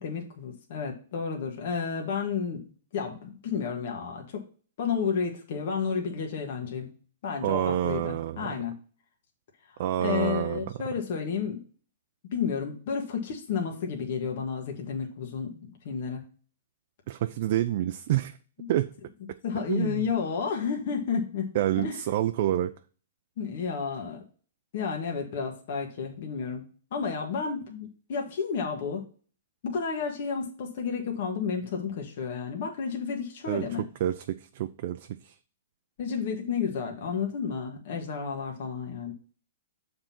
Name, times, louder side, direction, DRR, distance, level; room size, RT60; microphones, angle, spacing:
voice 1, 0.0-2.6 2.9-4.4 4.8-6.9 7.2-8.7 10.0-11.6 12.3-16.3 19.4-21.5 21.8-22.0 23.4-24.2 24.7-29.0 29.6-33.8 36.0-39.1, left 6 dB, 55° left, 1.5 m, -31 dB
voice 2, 7.4-8.5 9.8-10.7 17.1-18.4 18.7-18.9 19.7-20.1 21.5-22.7 33.5-35.3, right 12 dB, 50° right, 0.4 m, -28 dB
6.9 x 3.8 x 5.8 m
hypercardioid pair, 150°, 0 cm